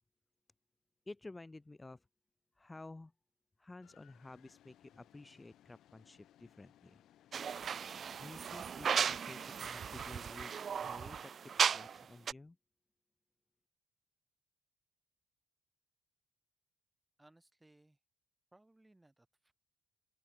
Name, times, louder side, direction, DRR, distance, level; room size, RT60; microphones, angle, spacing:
voice 1, 1.1-2.1 2.6-3.1 3.6-7.0 8.1-10.5 10.8-12.6, left 2 dB, 15° left, 2.2 m, -52 dB
sound 1, 3.8-11.3, left 12 dB, 70° left, 5.3 m, -65 dB
sound 2, 7.3-12.0 12.3-12.4, right 7 dB, 45° right, 0.4 m, -36 dB
voice 2, 17.2-18.0 18.5-19.5, right 1 dB, 10° right, 5.2 m, -65 dB
open air
cardioid pair, 90°, 0 cm